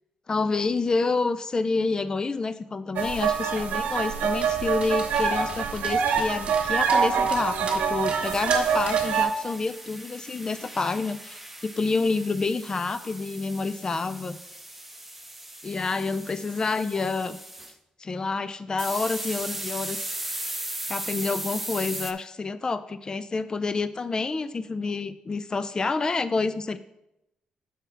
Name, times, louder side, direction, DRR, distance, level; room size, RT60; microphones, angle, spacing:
voice 1, 0.3-14.4 15.6-17.4 18.0-20.1 20.9-26.8, left 3 dB, 30° left, 13 dB, 0.4 m, -28 dB
sound 1, 3.0-9.3, right 6 dB, 85° right, 0.9 m, -25 dB
Dog, 4.4-9.2, right 4 dB, 50° right, 2.0 m, -39 dB
sound 2, 8.2-17.7 18.8-22.1, right 1 dB, 5° right, 0.7 m, -37 dB
6.9 x 5.8 x 4.5 m, 0.88 s
cardioid pair, 95°, 3 cm